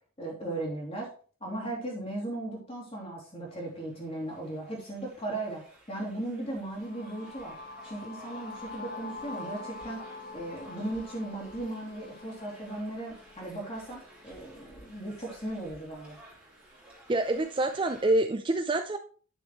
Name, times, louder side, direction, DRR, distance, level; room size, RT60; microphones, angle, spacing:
voice 1, 0.2-1.1 1.4-7.6 7.8-16.2, right 1 dB, 25° left, -2 dB, 2.9 m, -37 dB
sound 1, 3.5-18.1, right 1 dB, 5° right, 3.0 m, -55 dB
sound 2, 6.6-14.5, left 3 dB, 45° left, 1.6 m, -45 dB
voice 2, 17.1-19.0, right 2 dB, 20° right, 7 dB, 0.4 m, -26 dB
9.8 x 6.5 x 3.1 m, 0.41 s
head